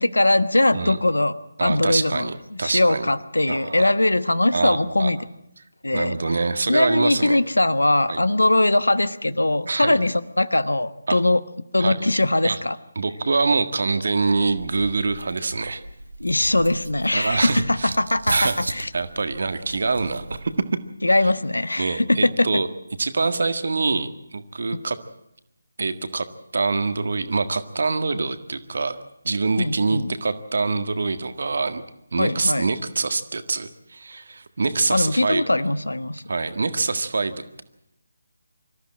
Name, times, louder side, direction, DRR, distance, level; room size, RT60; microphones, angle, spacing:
voice 1, 0.0-1.3 1.6-2.3 2.6-5.2 5.8-6.1 6.7-11.4 11.7-12.8 16.2-18.9 21.0-22.5 29.6-30.1 32.2-32.6 34.9-36.2, left 2 dB, 75° left, 15 dB, 1.1 m, -21 dB
voice 2, 1.6-3.1 3.5-3.9 4.5-5.1 5.9-7.4 8.1-8.2 9.7-10.0 11.1-11.2 11.8-12.1 12.4-12.6 12.9-15.8 17.1-17.9 18.3-18.6 18.9-20.5 21.8-22.7 23.0-25.0 25.8-26.3 26.5-31.8 32.1-35.4 36.3-37.6, right 3 dB, 55° right, 10 dB, 1.7 m, -25 dB
sound 1, 14.0-20.7, right 2 dB, 70° right, 1.7 m, -35 dB
25.0 x 14.0 x 8.8 m, 0.83 s
figure-of-eight pair, 150°, 0 cm